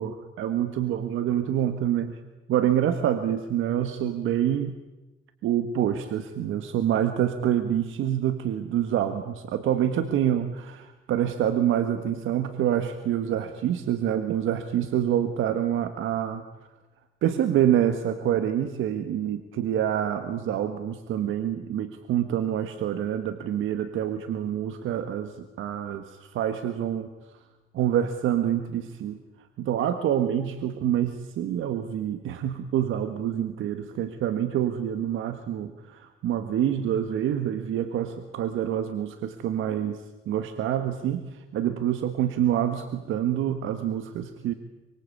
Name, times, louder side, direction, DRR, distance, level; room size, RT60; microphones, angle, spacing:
voice 1, 0.0-2.2 2.5-4.8 5.4-16.5 17.2-27.1 27.7-29.2 29.6-44.5, right 10 dB, 80° right, 9 dB, 1.6 m, -26 dB
24.5 x 24.0 x 8.6 m, 1.1 s
cardioid pair, 90°, 20 cm